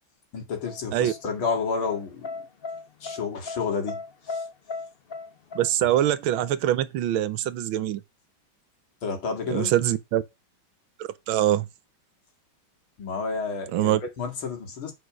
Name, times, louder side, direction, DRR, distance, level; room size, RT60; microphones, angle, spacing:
voice 1, 0.3-2.3 3.0-4.0 4.3-4.4 9.0-9.7 13.0-14.9, left 5 dB, 75° left, 3.0 m, -30 dB
sound 1, 0.6-6.5, left 4 dB, 60° left, 0.6 m, -37 dB
voice 2, 5.5-8.0 9.5-10.2 11.3-11.6 13.7-14.0, right 12 dB, 80° right, 1.5 m, -23 dB
8.3 x 5.1 x 5.0 m
omnidirectional pair, 2.3 m